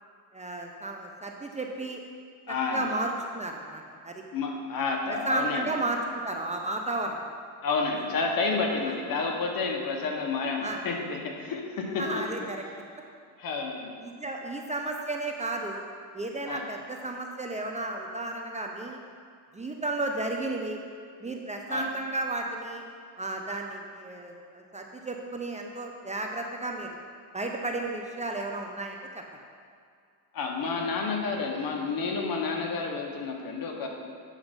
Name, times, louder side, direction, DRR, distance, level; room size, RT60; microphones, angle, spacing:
voice 1, 0.3-2.0 2.7-4.2 5.1-7.2 8.8-8.9 10.6-10.8 12.0-12.6 14.0-15.8 16.1-19.0 19.5-20.8 21.2-22.8 23.2-27.0 27.3-29.2, right 2 dB, 15° right, 2 dB, 0.7 m, -33 dB
voice 2, 2.5-2.8 4.3-5.7 7.6-12.0 13.4-13.9 16.5-16.7 21.7-21.9 30.3-33.9, left 4 dB, 55° left, 1 dB, 1.4 m, -30 dB
8.1 x 6.7 x 5.3 m, 2.3 s
cardioid pair, 110°, 41 cm